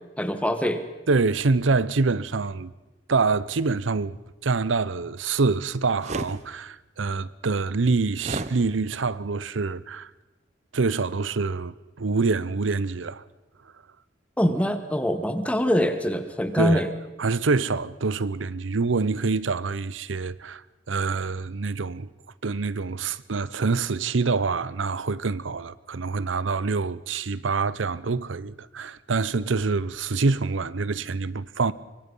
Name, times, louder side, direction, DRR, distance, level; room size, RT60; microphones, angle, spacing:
voice 1, 0.2-0.8 14.4-16.9, equal, 5° left, 1.4 m, -24 dB
voice 2, 1.1-2.7 3.1-4.2 4.4-10.1 10.7-13.2 16.6-16.9 17.2-22.1 22.4-31.7, right 4 dB, 85° right, 0.7 m, -26 dB
sound 1, 6.0-6.4 8.2-8.5, right 2 dB, 35° right, 0.9 m, -30 dB
25.0 x 24.0 x 5.5 m
head